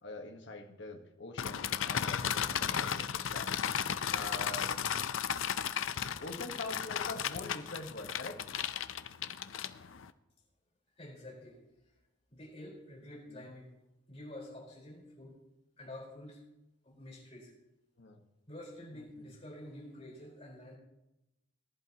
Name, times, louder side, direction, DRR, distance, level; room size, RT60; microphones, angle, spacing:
voice 1, 0.0-4.9 6.2-8.4 13.3-13.4 18.0-18.2 18.9-19.0, left 2 dB, 65° left, 3 dB, 1.2 m, -44 dB
sound 1, 1.4-10.1, left 8 dB, 85° left, 0.5 m, -35 dB
voice 2, 10.9-11.6 12.3-13.7 14.1-15.4 15.8-16.4 16.8-17.5 18.5-20.8, left 1 dB, 30° left, -3 dB, 4.4 m, -48 dB
19.0 x 11.0 x 2.9 m, 0.94 s
head